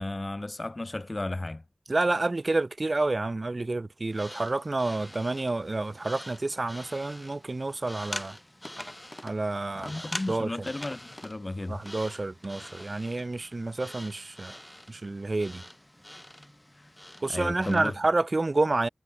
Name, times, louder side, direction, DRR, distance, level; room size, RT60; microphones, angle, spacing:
voice 1, 0.0-1.6 9.8-11.8 16.8-16.9 17.3-17.9, left 2 dB, 35° left, 7.0 m, -34 dB
voice 2, 1.9-8.4 9.2-9.9 10.3-10.7 11.7-14.6 14.9-15.6 17.2-18.9, right 2 dB, 45° right, 1.6 m, -29 dB
sound 1, 4.1-17.9, left 1 dB, 15° left, 7.6 m, -44 dB
wide cardioid pair, 75°, 0 cm